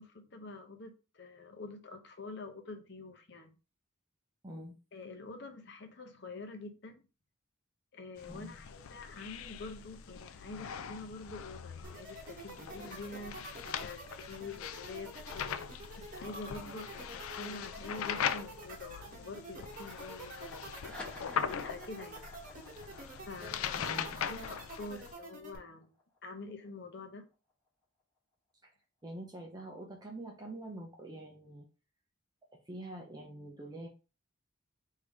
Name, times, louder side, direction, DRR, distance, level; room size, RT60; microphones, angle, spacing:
voice 1, 0.0-3.6 4.9-7.1 7.9-22.3 23.3-23.9 24.3-25.9 26.2-27.3, left 3 dB, 55° left, 0.7 m, -47 dB
voice 2, 4.4-4.7 8.3-8.6 23.7-24.2 28.6-28.7 29.0-31.7 32.5-33.9, right 1 dB, 20° right, 0.6 m, -45 dB
sound 1, 8.2-25.1, left 8 dB, 85° left, 0.4 m, -41 dB
sound 2, 11.8-25.6, right 3 dB, 40° right, 1.1 m, -48 dB
sound 3, 20.7-27.5, left 2 dB, 5° left, 1.0 m, -53 dB
3.5 x 2.7 x 4.6 m
head